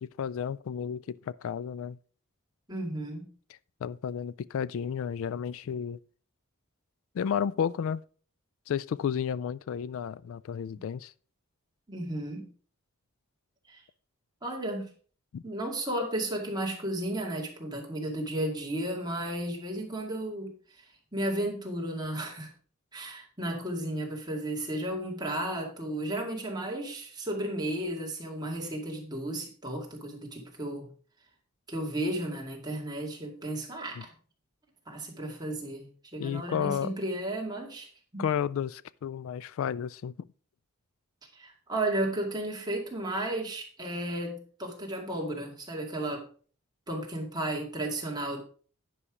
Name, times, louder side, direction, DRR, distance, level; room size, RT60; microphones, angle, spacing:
voice 1, 0.0-2.0 3.8-6.0 7.1-8.0 8.7-11.1 15.3-15.4 34.0-34.1 36.2-37.0 38.2-40.3, left 8 dB, 65° left, 0.3 m, -32 dB
voice 2, 2.7-3.3 11.9-12.5 13.7-13.8 14.4-14.9 15.4-22.5 22.9-30.9 31.7-34.1 34.9-38.2 41.3-46.3 46.9-48.4, right 1 dB, 20° right, 2.2 m, -34 dB
10.0 x 5.6 x 4.8 m
head